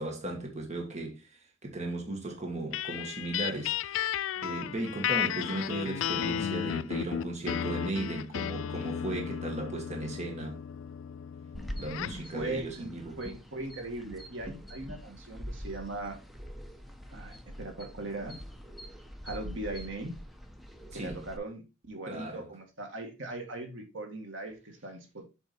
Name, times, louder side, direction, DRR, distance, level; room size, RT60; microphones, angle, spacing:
voice 1, 0.0-4.0 4.4-10.6 11.8-13.2 20.9-21.2 22.1-22.5, right 2 dB, 35° right, 1.6 m, -36 dB
sound 1, 2.7-12.3, left 9 dB, 80° left, 0.3 m, -34 dB
sound 2, 11.5-21.4, equal, ahead, 0.9 m, -44 dB
voice 2, 12.3-12.9 13.2-16.2 17.1-18.4 19.2-20.1 20.9-25.2, right 2 dB, 75° right, 2.0 m, -39 dB
7.3 x 4.7 x 4.3 m
head